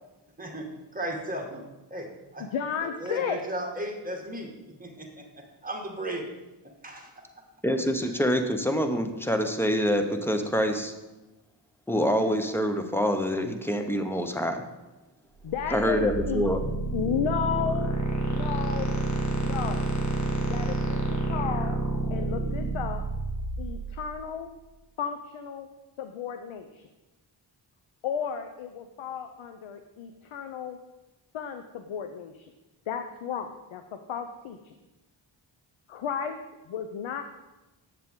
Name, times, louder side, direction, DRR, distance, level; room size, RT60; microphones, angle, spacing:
voice 1, 0.4-1.6 1.9-2.5 3.0-4.5 4.8-6.3 6.8-7.2, right 1 dB, 15° right, 1 dB, 1.8 m, -35 dB
voice 2, 2.4-3.4 15.4-16.5 16.9-17.9 18.2-19.0 19.3-19.9 20.5-21.8 22.1-23.0 23.6-24.5 25.0-25.7 26.0-26.9 28.0-30.8 31.3-32.5 32.9-34.7 35.9-36.4 36.7-37.2, left 7 dB, 85° left, 7 dB, 0.7 m, -33 dB
voice 3, 7.6-10.9 11.9-14.6 15.7-16.6, equal, 5° left, 6 dB, 0.9 m, -26 dB
sound 1, 15.5-24.4, right 2 dB, 35° left, 1.5 m, -29 dB
7.7 x 7.4 x 3.7 m, 1.0 s
cardioid pair, 60°, 47 cm